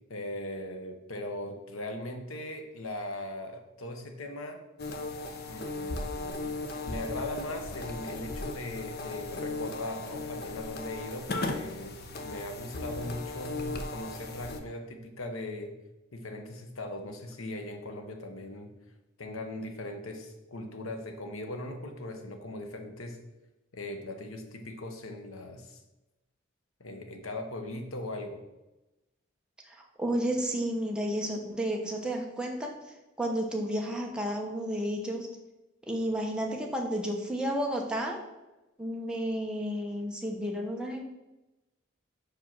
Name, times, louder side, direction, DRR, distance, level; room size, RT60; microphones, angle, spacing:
voice 1, 0.1-4.6 5.5-6.5 6.8-15.8 16.1-18.7 19.2-23.2 23.7-25.8 26.8-28.4, left 1 dB, 80° left, 5 dB, 1.0 m, -39 dB
sound 1, 4.8-14.6, left 2 dB, 50° left, 0.7 m, -37 dB
voice 2, 29.7-32.7 33.2-35.3 35.9-38.2 38.8-41.0, equal, 5° right, 0 dB, 1.0 m, -32 dB
5.3 x 5.0 x 5.9 m, 1.0 s
head